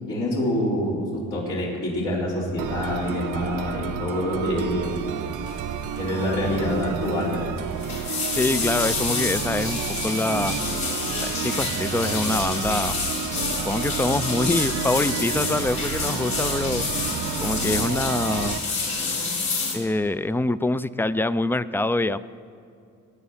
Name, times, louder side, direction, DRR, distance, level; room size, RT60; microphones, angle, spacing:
voice 1, 0.1-5.0 6.0-7.5, left 1 dB, 85° left, -6 dB, 4.0 m, -26 dB
sound 1, 2.6-18.6, right 9 dB, 80° right, 0.8 m, -31 dB
sound 2, 5.5-5.7 5.9-6.3 6.5-6.6 7.6-19.7, left 4 dB, 65° left, 3.8 m, -28 dB
voice 2, 8.4-10.6 11.2-13.0 13.6-16.9 17.4-18.6 19.7-22.2, left 2 dB, 10° left, 15 dB, 0.3 m, -25 dB
19.0 x 8.7 x 5.7 m, 2.5 s
cardioid pair, 90°, 30 cm